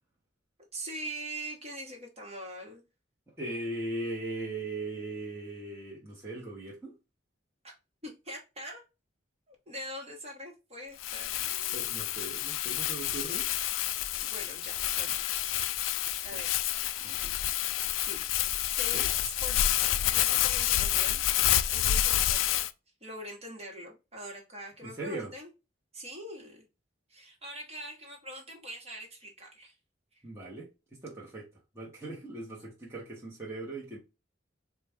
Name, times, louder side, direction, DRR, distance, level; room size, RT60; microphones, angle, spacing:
voice 1, 0.7-2.8 8.0-8.8 9.5-11.9 14.2-15.1 16.2-16.5 17.1-17.3 18.0-18.2 18.8-19.6 20.1-21.2 21.7-22.7 23.0-25.5 25.9-26.6 27.1-29.7 30.1-30.2, right 1 dB, 35° right, 1.2 m, -43 dB
voice 2, 3.4-6.9 11.7-13.5 16.3-16.4 17.0-17.3 18.9-19.1 24.8-25.3 30.2-30.7 31.0-31.4 31.7-34.0, right 2 dB, 15° right, 1.0 m, -39 dB
Crumpling crinkling, 11.0-22.7, left 12 dB, 85° left, 0.3 m, -29 dB
4.0 x 2.3 x 3.3 m
head